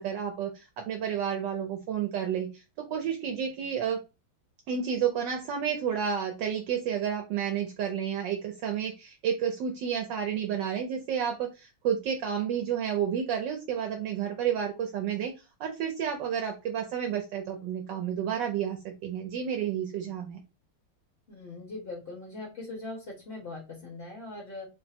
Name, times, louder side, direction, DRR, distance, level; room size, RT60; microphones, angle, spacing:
voice 1, 0.0-4.0 4.7-15.3 15.6-20.4, right 8 dB, 70° right, 3 dB, 1.2 m, -31 dB
voice 2, 21.3-24.7, left 2 dB, 35° left, -2 dB, 1.3 m, -41 dB
3.9 x 2.1 x 4.2 m, 0.28 s
omnidirectional pair, 2.1 m